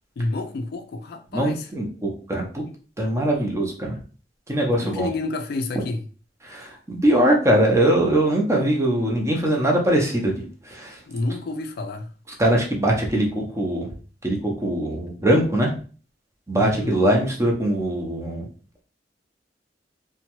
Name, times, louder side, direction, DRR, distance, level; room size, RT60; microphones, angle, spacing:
voice 1, 0.2-1.7 4.8-6.1 11.1-12.1 16.6-16.9, left 2 dB, 60° left, 0.4 m, -29 dB
voice 2, 1.3-2.6 3.0-4.0 4.5-5.1 6.4-10.4 10.6-11.0 12.4-13.9 14.2-15.7 16.5-18.5, right 1 dB, 15° right, 0.6 m, -21 dB
2.8 x 2.2 x 2.9 m
head